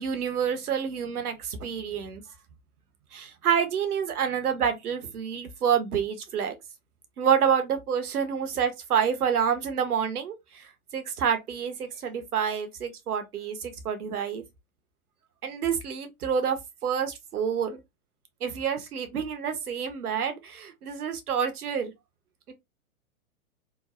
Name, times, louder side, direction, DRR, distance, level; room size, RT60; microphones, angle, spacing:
voice 1, 0.0-2.2 3.1-6.6 7.2-10.7 10.9-14.4 15.4-17.8 18.4-21.9 22.5-22.6, right 7 dB, 85° right, 0.8 m, -28 dB
3.0 x 2.0 x 2.4 m
hypercardioid pair, 115°, 44 cm